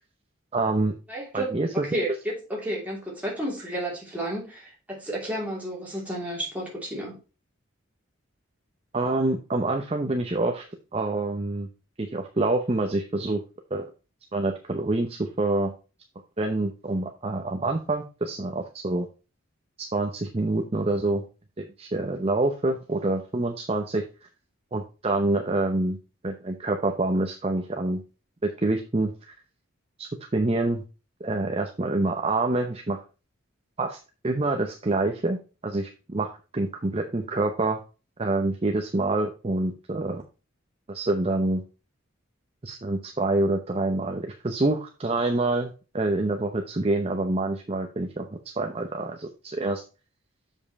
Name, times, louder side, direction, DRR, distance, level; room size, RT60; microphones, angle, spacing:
voice 1, 0.5-0.9 1.3-1.9 8.9-10.6 10.9-11.7 12.0-13.4 13.7-13.9 14.3-15.7 16.4-19.1 19.8-21.2 21.6-24.0 24.7-26.0 26.2-28.0 28.4-29.1 30.0-30.8 31.2-33.0 33.8-34.0 34.2-35.4 35.6-37.8 38.2-40.2 40.9-41.6 42.6-48.3 48.6-49.8, right 2 dB, 30° right, 3 dB, 0.6 m, -26 dB
voice 2, 1.1-7.2, right 1 dB, 5° right, -4 dB, 2.8 m, -32 dB
7.1 x 5.4 x 4.1 m, 0.32 s
head